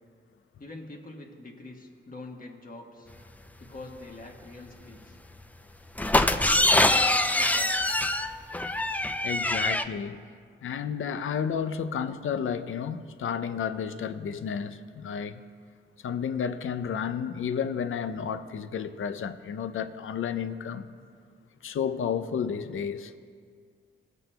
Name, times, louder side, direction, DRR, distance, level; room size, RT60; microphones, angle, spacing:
voice 1, 0.6-3.1 3.6-5.2 6.2-7.7, left 2 dB, 45° left, 0 dB, 1.3 m, -44 dB
sound 1, 6.0-9.8, left 1 dB, 5° left, 0.4 m, -24 dB
voice 2, 9.2-10.2 10.6-15.4 16.0-20.9 21.6-23.1, left 7 dB, 75° left, 11 dB, 0.5 m, -31 dB
21.5 x 8.1 x 2.2 m, 2.1 s
cardioid pair, 75°, 21 cm